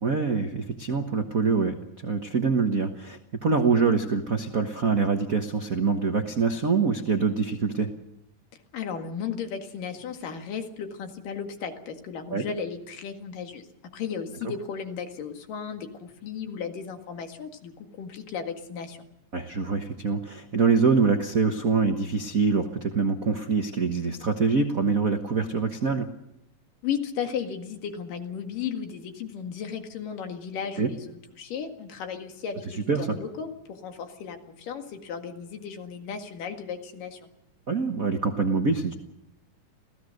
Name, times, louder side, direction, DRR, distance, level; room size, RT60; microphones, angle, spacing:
voice 1, 0.0-1.7 2.0-7.9 12.3-12.5 19.3-26.1 30.8-30.9 32.7-33.2 37.7-38.9, right 5 dB, 85° right, 5 dB, 0.7 m, -25 dB
voice 2, 8.7-13.7 13.9-19.1 26.8-37.2, left 7 dB, 80° left, 5 dB, 3.6 m, -35 dB
27.5 x 16.5 x 6.6 m, 0.86 s
omnidirectional pair, 3.7 m